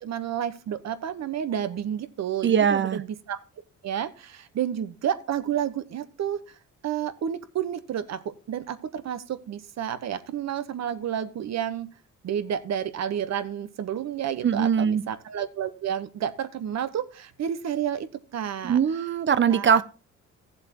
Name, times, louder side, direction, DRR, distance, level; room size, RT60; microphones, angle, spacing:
voice 1, 0.0-3.4 3.8-6.4 6.8-11.9 12.2-18.1 18.3-18.8 19.5-19.8, right 9 dB, 60° right, 1.1 m, -30 dB
voice 2, 2.4-3.0 14.4-15.0 18.6-19.8, right 7 dB, 40° right, 0.7 m, -21 dB
15.5 x 7.5 x 3.0 m
cardioid pair, 90°, 30 cm